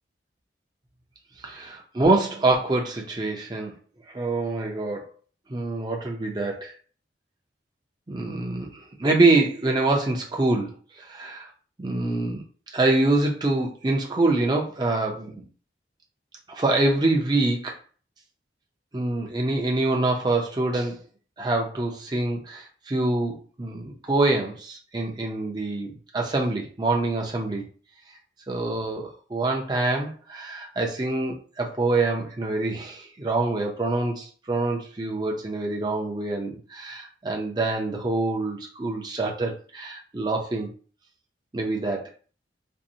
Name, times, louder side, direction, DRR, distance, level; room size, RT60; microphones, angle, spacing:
voice 1, 1.4-3.7 4.1-5.1 5.5-6.7 8.1-11.5 11.8-12.4 12.7-15.5 16.5-17.8 18.9-21.0 21.4-27.6 28.5-40.7 41.5-42.1, right 2 dB, 25° right, 0 dB, 0.4 m, -25 dB
2.6 x 2.0 x 2.6 m, 0.40 s
head